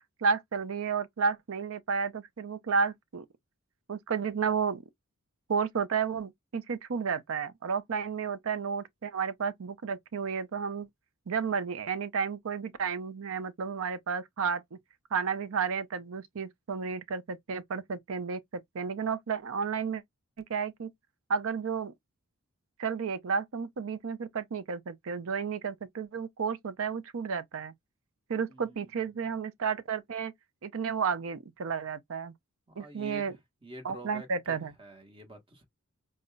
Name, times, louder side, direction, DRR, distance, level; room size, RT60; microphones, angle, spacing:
voice 1, 0.2-3.2 3.9-4.8 5.5-10.9 11.3-14.8 15.1-20.0 20.5-20.9 21.3-21.9 22.8-27.7 28.3-30.3 30.6-32.3 32.8-33.3 33.8-34.7, right 6 dB, 65° right, 0.5 m, -32 dB
voice 2, 28.5-29.2 32.7-35.7, right 1 dB, 25° right, 1.2 m, -48 dB
5.1 x 2.1 x 2.2 m
head